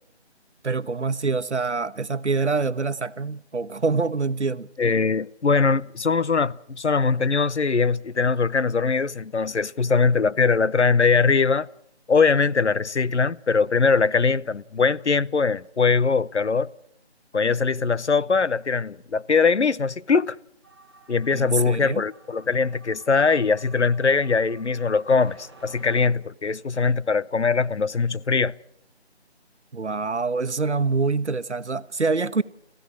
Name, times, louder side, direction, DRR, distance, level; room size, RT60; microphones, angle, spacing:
voice 1, 0.6-4.7 21.3-22.0 29.7-32.4, right 4 dB, 85° right, 1.2 m, -25 dB
voice 2, 4.8-11.7 12.1-16.7 17.3-20.4 21.1-28.5, left 4 dB, 85° left, 0.9 m, -21 dB
sound 1, 20.6-26.1, right 3 dB, 20° right, 1.8 m, -52 dB
27.0 x 15.5 x 6.2 m
figure-of-eight pair, 175°, 34 cm